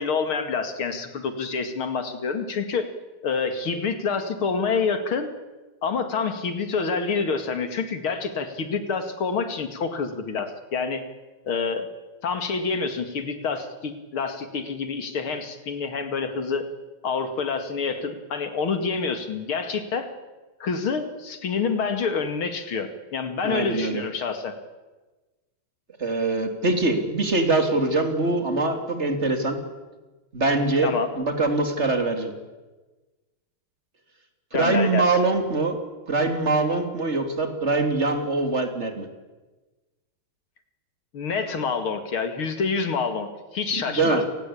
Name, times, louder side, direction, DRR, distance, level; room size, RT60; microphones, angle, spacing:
voice 1, 0.0-2.9 3.2-5.3 5.8-11.0 11.4-11.9 12.2-16.7 17.0-20.1 20.6-24.6 30.8-31.1 34.5-35.2 41.1-43.3 43.5-44.2, left 5 dB, 80° left, 9 dB, 3.1 m, -27 dB
voice 2, 23.4-24.0 26.0-29.6 30.3-32.3 34.5-35.8 36.1-39.1 43.7-44.3, right 3 dB, 30° right, 6 dB, 3.4 m, -23 dB
30.0 x 19.5 x 8.6 m, 1.2 s
omnidirectional pair, 2.3 m